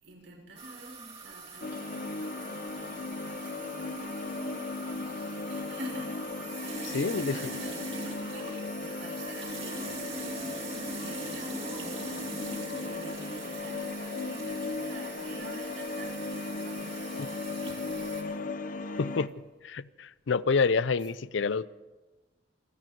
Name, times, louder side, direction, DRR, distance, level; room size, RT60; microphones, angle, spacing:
voice 1, 0.0-18.4, right 1 dB, 75° right, 6.1 m, -48 dB
sound 1, 0.6-18.2, right 3 dB, 30° right, 3.0 m, -42 dB
sound 2, 1.6-19.3, left 3 dB, 45° left, 0.8 m, -37 dB
voice 2, 6.9-7.4 17.2-17.3 19.0-19.3 19.6-21.7, left 4 dB, 75° left, 0.5 m, -28 dB
27.0 x 9.2 x 5.3 m
head